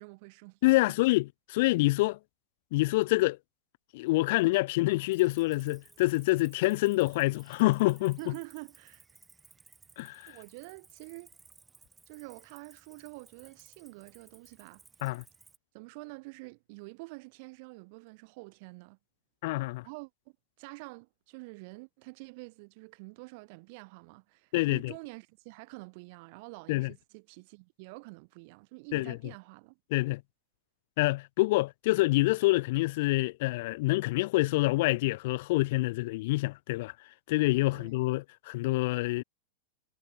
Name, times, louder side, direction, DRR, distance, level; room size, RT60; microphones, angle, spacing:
voice 1, 0.0-0.6 0.9-1.0 8.0-9.0 10.3-11.3 12.1-14.8 15.7-19.0 19.8-20.1 20.6-29.8 37.7-37.9, right 29 dB, 50° right, 3.8 m, -47 dB
voice 2, 0.6-2.2 2.7-3.4 3.9-8.2 10.0-10.3 15.0-15.2 19.4-19.9 24.5-24.9 26.7-26.9 28.9-29.2 29.9-30.2 31.0-36.9 37.3-39.2, left 21 dB, 55° left, 0.6 m, -26 dB
Cricket, 5.1-15.6, right 4 dB, 10° right, 6.4 m, -59 dB
supercardioid pair, 165°, 0 cm